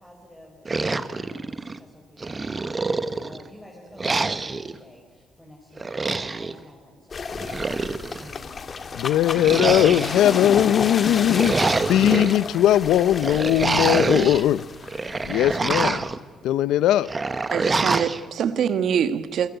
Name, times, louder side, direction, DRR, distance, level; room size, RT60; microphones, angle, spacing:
voice 1, 0.0-7.4 8.1-8.6, left 1 dB, 10° left, 5.3 m, -50 dB
sound 1, 0.7-1.8 2.2-3.4 4.0-4.7 5.8-6.5 7.3-8.3 9.4-10.4 11.1-12.3 13.2-14.4 14.8-16.2 17.1-18.2, right 3 dB, 25° right, 1.3 m, -26 dB
sound 2, 7.1-16.0, left 5 dB, 40° left, 1.8 m, -31 dB
voice 2, 8.9-14.7 15.2-16.1 16.4-17.2, left 12 dB, 85° left, 0.7 m, -20 dB
voice 3, 17.5-19.5, right 8 dB, 70° right, 1.5 m, -24 dB
28.0 x 17.5 x 9.2 m
cardioid pair, 90°, 0 cm